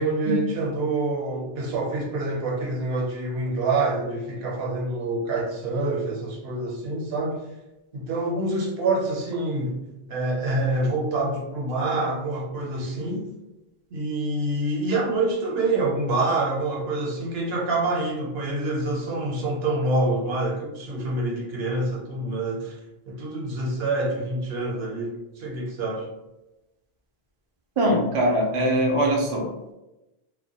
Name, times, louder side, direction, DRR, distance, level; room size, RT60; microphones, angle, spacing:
voice 1, 0.0-7.4 7.9-9.8 10.1-13.2 13.9-22.8 23.1-26.1, right 2 dB, 75° right, -3 dB, 0.9 m, -26 dB
voice 2, 27.8-29.5, right 1 dB, 50° right, 0 dB, 0.4 m, -22 dB
2.1 x 2.1 x 2.7 m, 0.98 s
omnidirectional pair, 1.0 m